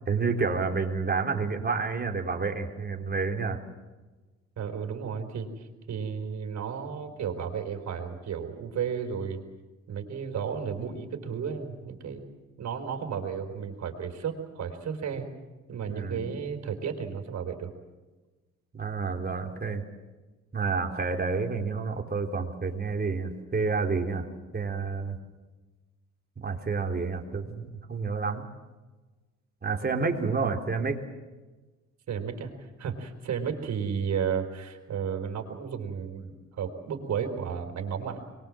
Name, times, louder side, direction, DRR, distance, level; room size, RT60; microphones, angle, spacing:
voice 1, 0.1-3.6 15.9-16.3 18.7-19.8 20.5-24.3 24.5-25.2 26.4-28.5 29.6-31.0, right 4 dB, 30° right, 2 dB, 3.5 m, -29 dB
voice 2, 4.6-9.4 9.9-12.2 12.6-15.3 15.7-17.7 32.1-38.2, right 7 dB, 65° right, 4 dB, 4.5 m, -33 dB
24.0 x 22.0 x 7.7 m, 1.2 s
cardioid pair, 90°, 30 cm